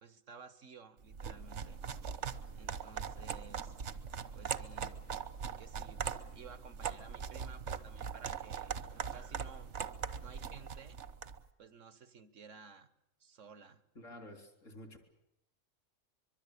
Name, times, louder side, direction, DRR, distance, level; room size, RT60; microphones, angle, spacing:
voice 1, 0.0-1.8 2.6-3.8 4.3-5.1 5.6-6.1 6.3-9.7 10.2-11.0 11.6-12.9 13.2-13.8, right 5 dB, 85° right, 13 dB, 1.8 m, -55 dB
sound 1, 1.1-11.4, right 7 dB, 65° right, 1.4 m, -41 dB
voice 2, 14.0-15.0, left 1 dB, 85° left, 5 dB, 4.1 m, -50 dB
24.0 x 23.5 x 8.5 m, 0.82 s
omnidirectional pair, 1.3 m